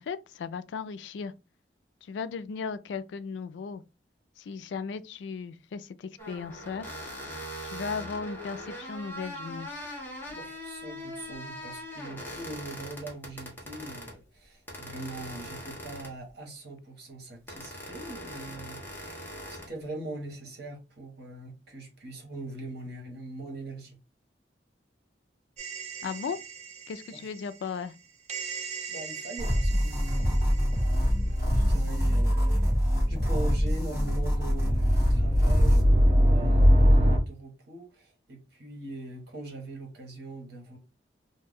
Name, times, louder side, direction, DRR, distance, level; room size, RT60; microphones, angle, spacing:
voice 1, 0.0-1.3 2.1-3.8 4.4-6.9 7.7-9.7 26.0-26.4 26.9-27.9, left 5 dB, 75° left, 0.3 m, -36 dB
sound 1, 6.2-14.2 14.7-16.3 17.5-19.7, equal, 10° left, 0.8 m, -41 dB
voice 2, 10.3-24.0 27.1-27.3 28.9-40.8, right 2 dB, 65° right, 1.1 m, -42 dB
sound 2, 25.6-26.7 28.3-30.1 34.0-37.2, equal, 40° right, 0.5 m, -23 dB
sound 3, 29.4-35.8, equal, 15° right, 1.5 m, -25 dB
2.5 x 2.2 x 3.4 m
head